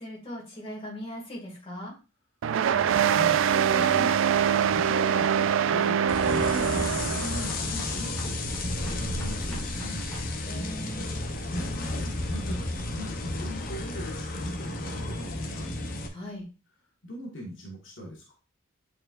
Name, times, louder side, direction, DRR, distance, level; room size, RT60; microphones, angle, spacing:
voice 1, 0.0-1.9 10.5-11.1 16.1-16.5, equal, 25° left, -4 dB, 2.2 m, -39 dB
sound 1, 2.4-7.5, right 8 dB, 65° right, 0.3 m, -24 dB
voice 2, 2.5-10.1 11.6-15.7 17.0-18.3, left 1 dB, 60° left, -2 dB, 1.7 m, -41 dB
sound 2, 2.7-10.2, left 1 dB, 5° left, 2.9 m, -46 dB
sound 3, 6.1-16.1, left 2 dB, 40° left, 0.8 m, -32 dB
8.5 x 4.4 x 2.5 m, 0.32 s
head